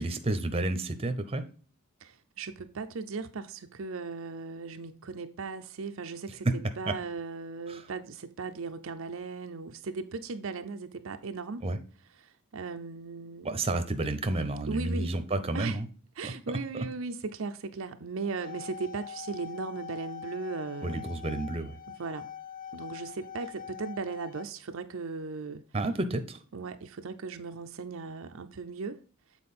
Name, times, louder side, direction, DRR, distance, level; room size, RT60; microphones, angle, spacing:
voice 1, 0.0-1.4 6.9-7.0 7.7-7.8 11.6-11.8 13.4-15.9 16.2-16.9 20.8-21.8 25.7-26.4, right 2 dB, 25° right, 0.8 m, -31 dB
voice 2, 2.0-11.7 12.2-13.6 14.7-15.1 15.5-15.8 16.2-21.0 22.0-22.3 22.7-25.6 26.5-29.0, right 4 dB, 65° right, 0.6 m, -37 dB
sound 1, 18.2-24.4, left 8 dB, 40° left, 0.5 m, -43 dB
7.6 x 4.4 x 4.2 m
head